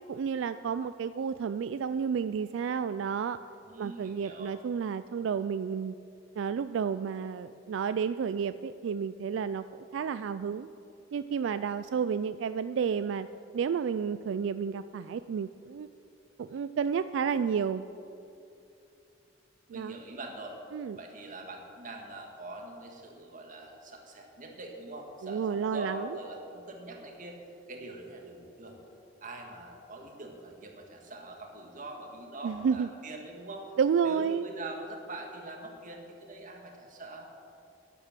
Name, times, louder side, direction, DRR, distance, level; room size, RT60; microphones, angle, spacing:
voice 1, 0.1-3.4 3.8-6.0 6.4-9.7 9.9-10.7 11.1-13.3 13.5-15.9 16.4-17.9 19.7-20.0 20.7-21.0 25.2-26.1 32.4-32.9 33.8-34.5, right 6 dB, 80° right, 13 dB, 0.3 m, -31 dB
voice 2, 3.6-4.6 19.7-20.6 21.0-27.4 27.7-28.8 29.2-33.7 34.0-37.3, right 2 dB, 45° right, 2 dB, 1.9 m, -43 dB
11.0 x 10.0 x 7.4 m, 2.7 s
head